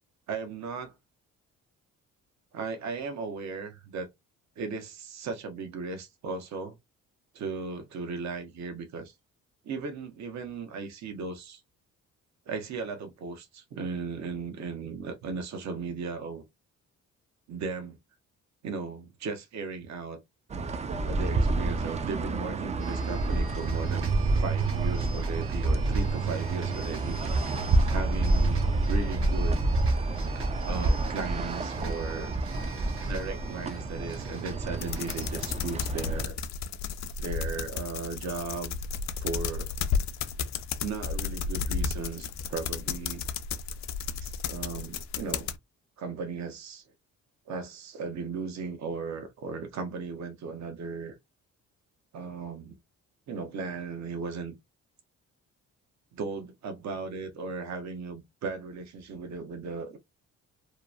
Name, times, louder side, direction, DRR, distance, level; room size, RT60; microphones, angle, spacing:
voice 1, 0.3-1.0 2.5-4.1 4.6-6.7 7.3-9.1 9.6-11.6 12.5-16.4 17.5-18.0 18.6-20.2 21.0-24.1 24.4-27.6 27.9-29.7 30.6-32.3 33.1-36.4 37.2-38.7 39.2-39.8 40.8-43.2 44.2-45.5 46.0-46.8 47.5-51.2 52.1-52.8 53.3-54.5 56.1-60.0, right 4 dB, 65° right, 0.8 m, -36 dB
sound 1, 20.5-36.2, right 2 dB, 25° right, 0.3 m, -28 dB
sound 2, 22.8-35.3, right 4 dB, 45° right, 1.1 m, -47 dB
sound 3, 34.8-45.6, left 6 dB, 65° left, 0.5 m, -33 dB
2.9 x 2.0 x 2.3 m
cardioid pair, 90°, 30 cm